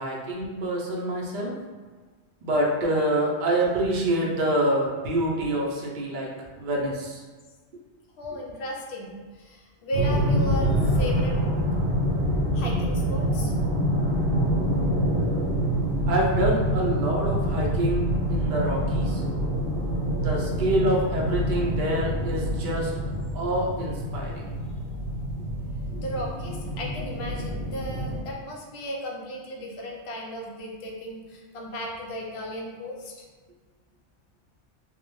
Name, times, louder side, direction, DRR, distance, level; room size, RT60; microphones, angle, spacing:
voice 1, 0.0-1.5 2.4-6.3 6.6-7.2 16.1-19.2 20.1-22.9 23.3-24.5 25.9-26.0, right 1 dB, 55° right, -2 dB, 0.6 m, -26 dB
voice 2, 8.2-11.4 12.5-13.5 21.3-21.6 26.0-33.2, equal, 70° left, -1 dB, 0.8 m, -35 dB
sound 1, 9.9-28.2, equal, 90° right, 0.9 m, -26 dB
2.8 x 2.0 x 3.0 m, 1.4 s
omnidirectional pair, 1.2 m